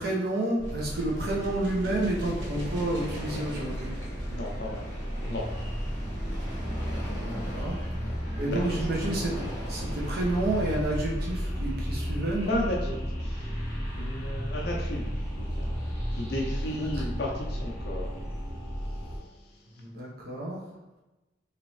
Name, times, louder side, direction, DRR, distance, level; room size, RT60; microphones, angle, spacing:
voice 1, 0.0-4.0 7.1-12.6 16.7-17.0 19.8-20.6, right 1 dB, 50° right, -4 dB, 0.8 m, -30 dB
sound 1, 0.6-19.2, equal, 75° right, 1.3 m, -33 dB
voice 2, 4.3-4.9 5.2-5.5 7.2-7.4 8.0-8.2 8.4-8.8 12.5-13.5 13.9-15.8 16.1-18.1 18.9-19.6, left 1 dB, 55° left, -2 dB, 0.4 m, -35 dB
3.1 x 2.6 x 3.1 m, 1.0 s
head